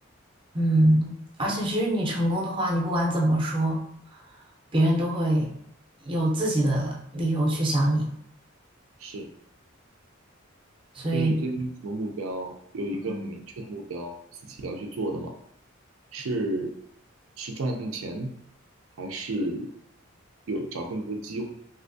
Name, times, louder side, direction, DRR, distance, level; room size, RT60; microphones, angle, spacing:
voice 1, 0.5-3.8 4.7-5.5 6.0-8.1 10.9-11.3 13.0-13.3, right 1 dB, 25° right, -2 dB, 0.6 m, -24 dB
voice 2, 11.1-14.1 14.4-15.3 16.1-16.7 17.4-18.3 19.0-19.7 20.5-21.5, right 2 dB, 85° right, 3 dB, 0.5 m, -32 dB
3.3 x 2.7 x 2.6 m, 0.69 s
head